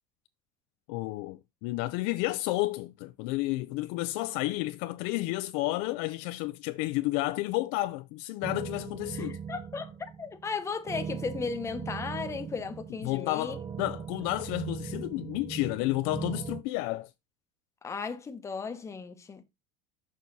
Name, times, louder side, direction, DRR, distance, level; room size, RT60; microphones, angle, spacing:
voice 1, 0.9-9.4 13.0-17.1, left 18 dB, 55° left, 0.5 m, -31 dB
sound 1, 8.4-16.6, right 7 dB, 15° right, 0.4 m, -39 dB
voice 2, 9.1-9.9 10.2-13.6 17.8-19.4, left 5 dB, 15° left, 1.0 m, -36 dB
6.5 x 5.4 x 4.0 m
supercardioid pair, 155°, 21 cm